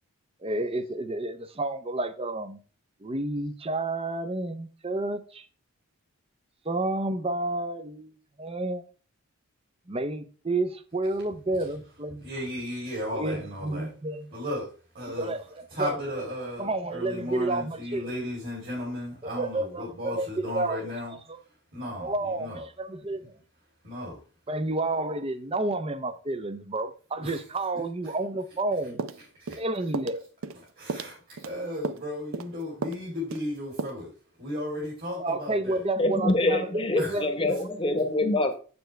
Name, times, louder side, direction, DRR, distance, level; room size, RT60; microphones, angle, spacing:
voice 1, 0.4-2.6 3.0-5.5 6.7-8.8 9.9-12.3 13.1-14.3 15.2-16.0 16.6-18.1 19.2-20.9 21.3-21.4 22.0-23.3 24.5-29.1 29.6-30.2 35.2-37.2 37.7-37.8, right 2 dB, 25° right, 0.6 m, -30 dB
voice 2, 12.2-13.9 14.3-15.3 15.7-21.1 21.7-22.6 23.8-24.2 27.2-27.4 28.0-28.1 29.4-29.6 30.7-34.1 34.4-35.8 37.0-37.2, left 1 dB, 45° right, 3.0 m, -35 dB
sound 1, 29.0-29.6 29.9-30.2 30.4-30.6 30.9-31.5 31.8-32.1 32.3-32.5 32.8-33.0 33.3-33.5 33.8-33.9, right 4 dB, 65° right, 0.5 m, -34 dB
voice 3, 36.0-38.5, left 2 dB, 25° left, 1.0 m, -25 dB
7.8 x 7.0 x 3.2 m
head